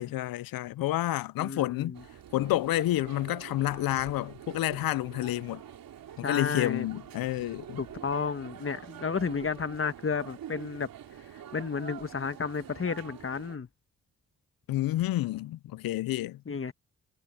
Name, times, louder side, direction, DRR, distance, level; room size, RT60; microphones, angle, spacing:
voice 1, 0.0-1.9 2.3-5.6 6.2-7.8 14.7-16.4, left 15 dB, 80° left, 0.6 m, -29 dB
voice 2, 1.4-2.0 6.2-6.9 7.8-10.9 11.5-13.7 16.4-16.7, left 5 dB, 35° left, 1.5 m, -32 dB
sound 1, 1.9-13.6, right 10 dB, 75° right, 2.9 m, -46 dB
supercardioid pair, 50°, 35 cm